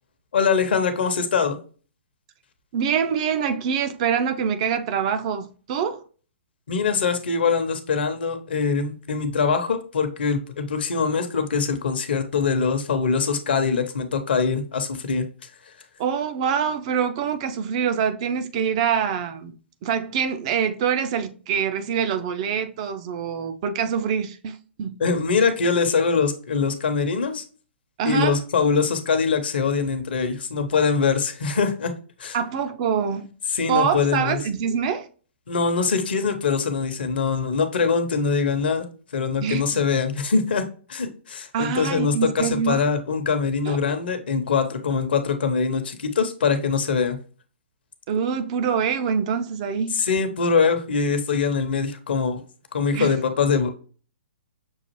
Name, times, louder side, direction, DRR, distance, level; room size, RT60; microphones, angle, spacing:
voice 1, 0.3-1.6 6.7-15.2 25.0-27.4 28.1-31.9 32.2-32.4 33.5-34.4 35.5-38.9 39.1-47.2 49.9-52.4 52.7-53.7, left 5 dB, 55° left, 0.8 m, -23 dB
voice 2, 2.7-6.0 16.0-19.5 19.8-25.0 28.0-28.4 32.3-33.3 33.7-35.1 39.4-39.8 41.5-42.9 43.7-43.8 48.1-50.0 52.9-53.1, right 7 dB, 35° right, 0.4 m, -25 dB
6.3 x 2.5 x 2.9 m
figure-of-eight pair, 120°, 6 cm